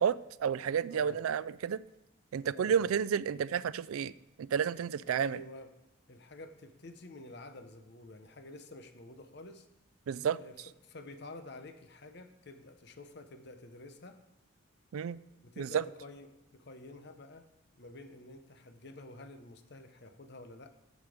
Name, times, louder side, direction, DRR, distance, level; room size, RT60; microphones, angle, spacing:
voice 1, 0.0-1.8 2.3-4.1 4.4-5.4 10.1-10.4 14.9-15.2 15.6-15.8, right 7 dB, 90° right, 18 dB, 0.4 m, -31 dB
voice 2, 0.9-1.2 2.5-2.9 5.1-5.8 6.1-9.7 10.3-14.2 15.4-17.5 17.8-20.7, left 2 dB, 55° left, 8 dB, 0.8 m, -50 dB
9.3 x 7.4 x 4.9 m, 0.92 s
head